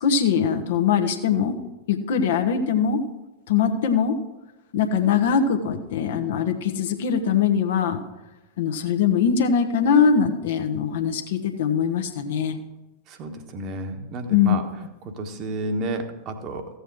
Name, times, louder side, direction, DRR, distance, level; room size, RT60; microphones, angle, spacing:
voice 1, 0.0-1.6 1.9-3.0 3.5-4.1 4.7-8.0 8.6-12.6 14.3-14.5, left 7 dB, 55° left, 7 dB, 1.1 m, -22 dB
voice 2, 13.1-14.6 15.0-16.7, right 2 dB, 35° right, 6 dB, 1.3 m, -31 dB
14.5 x 8.0 x 4.6 m, 1.1 s
figure-of-eight pair, 90°, 0 cm